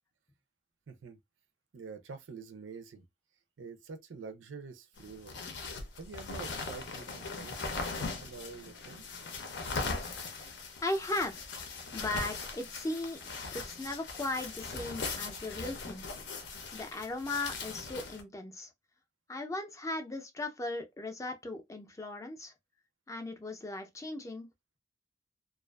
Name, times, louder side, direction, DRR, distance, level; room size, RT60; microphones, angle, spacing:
voice 1, 0.9-1.2 1.7-3.0 3.6-5.3 6.0-9.1, right 4 dB, 85° right, 0.5 m, -47 dB
sound 1, 5.0-18.2, left 4 dB, 65° left, 0.6 m, -40 dB
voice 2, 10.8-11.4 11.9-13.2 13.5-16.0 16.7-18.7 19.3-22.5 23.1-24.5, left 2 dB, 15° left, 0.4 m, -37 dB
2.4 x 2.4 x 2.3 m
head